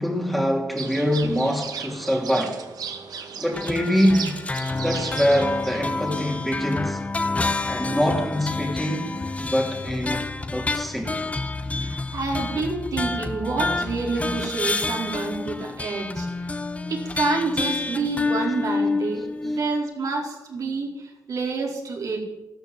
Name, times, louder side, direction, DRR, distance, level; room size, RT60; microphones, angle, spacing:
voice 1, 0.0-2.7 3.4-4.3 4.8-7.0 7.6-11.1, equal, ahead, 2.6 m, -24 dB
sound 1, 0.8-6.4, right 6 dB, 85° right, 2.0 m, -36 dB
sound 2, 3.5-19.8, left 3 dB, 20° left, 1.0 m, -28 dB
voice 2, 11.7-16.5 16.9-22.2, right 3 dB, 70° right, 4.7 m, -28 dB
14.0 x 12.5 x 7.8 m
wide cardioid pair, 110°, 6 cm